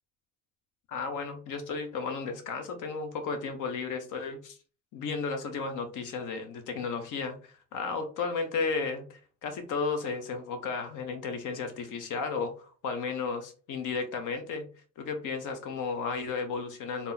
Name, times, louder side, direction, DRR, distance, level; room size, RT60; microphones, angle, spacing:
voice 1, 0.9-4.6 4.9-14.7 15.0-17.1, left 4 dB, 80° left, 6 dB, 1.0 m, -34 dB
3.6 x 2.9 x 4.1 m, 0.38 s
cardioid pair, 90°, 30 cm